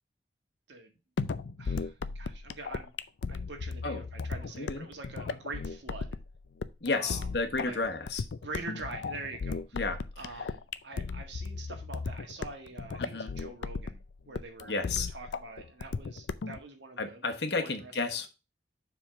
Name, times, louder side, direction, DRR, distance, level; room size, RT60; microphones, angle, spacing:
sound 1, 1.2-16.6, left 4 dB, 85° left, 0.5 m, -36 dB
voice 1, 1.6-2.9 3.3-6.2 6.9-7.3 7.6-7.8 8.4-9.8 10.2-14.0 14.2-17.9, right 3 dB, 85° right, 4 dB, 1.7 m, -44 dB
voice 2, 4.5-4.9 6.8-8.2 9.7-10.0 13.0-13.3 14.7-15.1 17.0-18.3, left 3 dB, 70° left, 6 dB, 1.2 m, -32 dB
7.1 x 3.7 x 5.7 m, 0.29 s
head